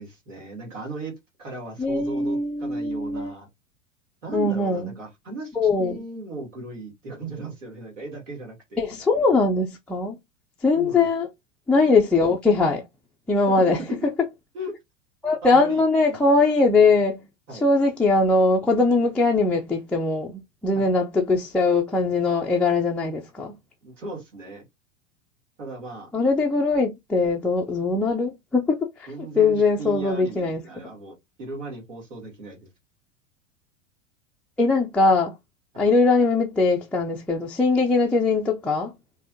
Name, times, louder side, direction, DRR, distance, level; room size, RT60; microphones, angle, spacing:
voice 1, 0.0-3.5 4.2-8.8 10.7-11.1 14.0-14.1 14.5-14.8 15.4-15.8 16.1-16.2 17.5-17.7 20.7-20.9 23.8-24.7 25.6-26.1 29.1-32.7 35.7-35.8, right 2 dB, 70° right, 2.3 m, -37 dB
voice 2, 1.8-3.3 4.3-4.9 5.6-5.9 8.8-10.2 10.6-11.3 11.7-12.8 13.3-13.8 15.2-17.2 17.6-20.3 20.6-23.5 26.1-28.9 29.4-30.6 34.6-35.3 35.8-38.9, left 3 dB, 5° left, 0.4 m, -21 dB
5.3 x 2.7 x 2.6 m
figure-of-eight pair, 85°, 38 cm